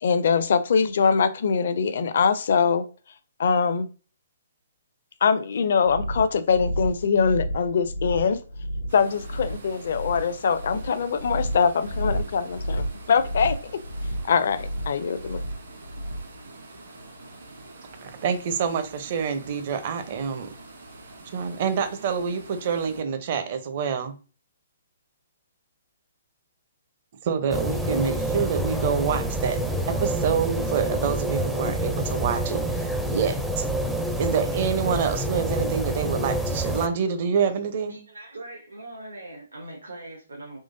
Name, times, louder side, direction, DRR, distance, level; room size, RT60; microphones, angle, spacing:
voice 1, 0.0-2.9 3.4-3.9 5.2-8.4 8.9-13.7 14.2-15.4, left 6 dB, 60° left, 0.4 m, -23 dB
sound 1, 5.8-16.4, equal, 85° left, 1.2 m, -32 dB
sound 2, 8.9-23.0, right 2 dB, 60° right, 1.5 m, -46 dB
voice 2, 18.0-20.5 21.3-24.1 27.2-33.6 34.2-38.0, right 7 dB, 45° right, 0.6 m, -27 dB
sound 3, 27.5-36.9, right 1 dB, ahead, 0.4 m, -27 dB
voice 3, 37.9-40.6, right 2 dB, 80° right, 1.0 m, -41 dB
3.7 x 3.0 x 2.6 m
figure-of-eight pair, 130°, 0 cm